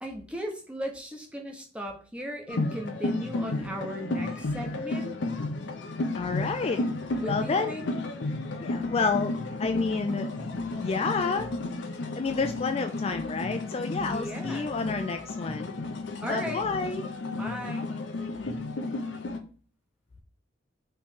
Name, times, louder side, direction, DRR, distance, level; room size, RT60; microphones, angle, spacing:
voice 1, 0.0-5.1 7.2-7.8 14.0-14.7 16.2-16.6 17.4-17.9, equal, 5° right, 1 dB, 0.8 m, -36 dB
sound 1, 2.5-19.4, left 2 dB, 70° left, 0.6 m, -33 dB
voice 2, 6.1-6.8 7.3-7.7 8.6-9.3 9.6-10.3 10.8-11.5 12.2-15.7 16.3-17.1, left 4 dB, 35° left, 6 dB, 0.3 m, -29 dB
4.3 x 3.1 x 3.5 m, 0.40 s
head